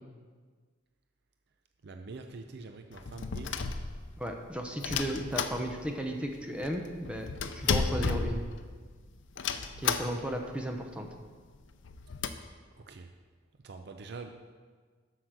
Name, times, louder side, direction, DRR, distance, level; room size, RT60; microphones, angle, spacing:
voice 1, 1.8-3.5 12.9-13.1 13.6-14.5, right 3 dB, 55° right, 6 dB, 0.5 m, -45 dB
sound 1, 2.9-4.3 4.8-6.1 6.3-6.4 6.6-8.9 9.4-10.4 10.8-10.9 11.1-11.2 11.7-12.3, left 5 dB, 70° left, 0.5 m, -33 dB
voice 2, 4.2-8.4 9.8-11.1, equal, 5° right, 2 dB, 0.7 m, -35 dB
7.7 x 6.6 x 6.1 m, 1.5 s
head